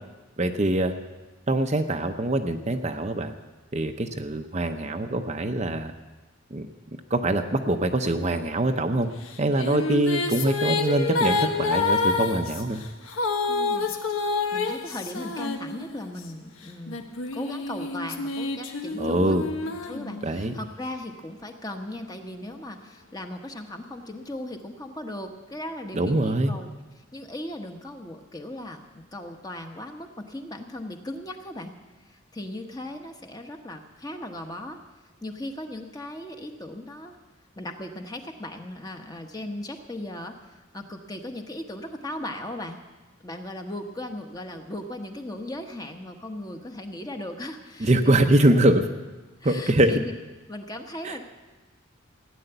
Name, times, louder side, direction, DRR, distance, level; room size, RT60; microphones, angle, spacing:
voice 1, 0.4-0.9 1.5-3.4 3.7-5.9 6.5-6.7 7.1-9.1 9.4-12.8 19.0-19.5 20.2-20.5 25.9-26.6 47.8-48.8 49.4-49.9 51.0-51.2, right 1 dB, 30° right, 6 dB, 0.7 m, -23 dB
sound 1, 9.3-16.2 16.9-20.6, left 3 dB, 80° left, 1.4 m, -28 dB
voice 2, 13.5-19.4 19.9-26.7 26.9-31.7 32.0-34.8 35.2-37.2 37.6-42.8 43.2-48.6 49.4-50.1 50.5-51.2, left 1 dB, 20° left, 4 dB, 1.1 m, -37 dB
16.0 x 10.0 x 8.0 m, 1.2 s
head